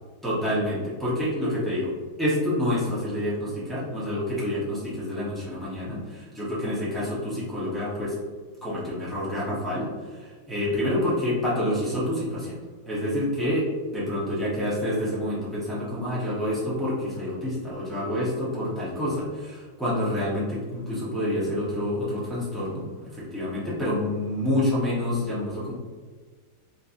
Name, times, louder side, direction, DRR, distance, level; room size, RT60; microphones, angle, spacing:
voice 1, 0.2-1.9 2.2-8.1 8.6-9.9 10.2-12.6 12.8-25.7, left 1 dB, ahead, -10 dB, 0.3 m, -28 dB
4.4 x 2.9 x 2.6 m, 1.5 s
omnidirectional pair, 2.4 m